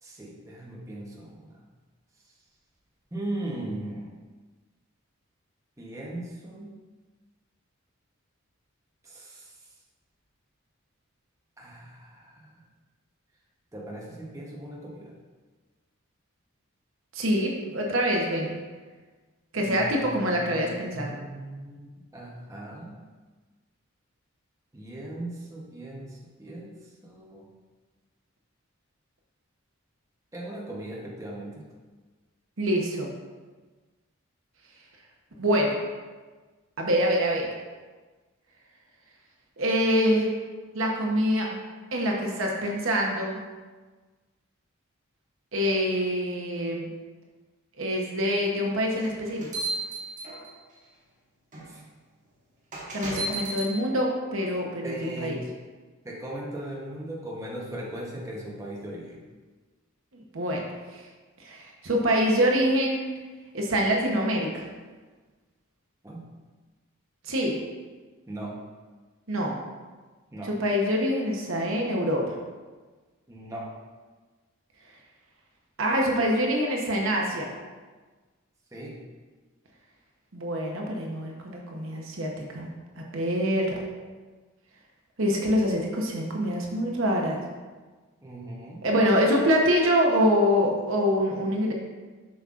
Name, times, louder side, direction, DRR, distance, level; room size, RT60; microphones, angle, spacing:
voice 1, 0.0-1.5 3.1-4.1 5.8-6.8 9.0-9.5 11.6-12.6 13.7-15.1 19.6-21.9 22.1-23.0 24.7-26.7 27.0-27.5 30.3-31.6 51.7-51.9 53.2-53.6 54.8-55.4 56.0-59.2 66.0-66.3 68.3-68.6 70.3-70.5 73.3-73.7 78.7-79.0 88.2-88.8, right 1 dB, 15° right, -4 dB, 0.9 m, -38 dB
voice 2, 17.1-18.6 19.5-21.2 32.6-33.1 35.4-35.8 36.8-37.5 39.6-40.3 40.7-41.6 41.9-43.4 45.5-46.9 47.8-49.5 52.9-55.4 60.1-60.6 60.9-61.0 61.4-63.1 63.5-64.6 67.2-67.6 69.3-69.6 70.4-72.2 75.8-77.5 80.3-83.8 85.2-87.4 88.8-91.7, equal, 65° right, 0 dB, 0.9 m, -25 dB
sound 1, 49.0-50.7 51.5-51.7 52.7-53.7, right 2 dB, 35° right, 1.5 m, -33 dB
7.3 x 5.7 x 2.5 m, 1.3 s
head